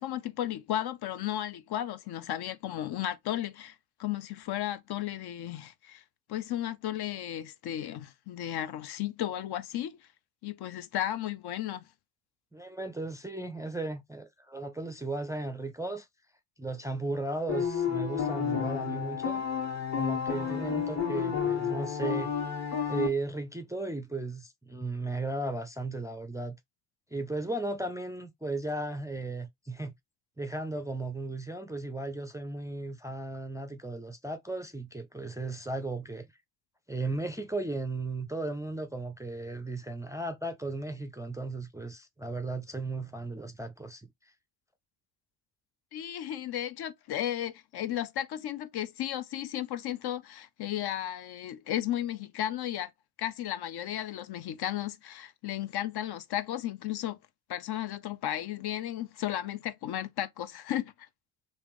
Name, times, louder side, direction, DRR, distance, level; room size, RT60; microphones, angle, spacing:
voice 1, 0.0-3.7 4.0-6.0 6.3-10.0 10.4-11.8 45.9-52.9 53.2-57.2 57.5-60.9, left 12 dB, 55° left, 0.5 m, -34 dB
voice 2, 12.5-16.1 16.6-19.4 20.0-22.3 22.9-26.6 27.1-29.9 30.4-36.3 36.9-44.1, right 2 dB, 5° right, 0.4 m, -35 dB
sound 1, 17.5-23.1, left 7 dB, 35° left, 1.5 m, -31 dB
3.4 x 2.6 x 3.0 m
supercardioid pair, 65°, 47 cm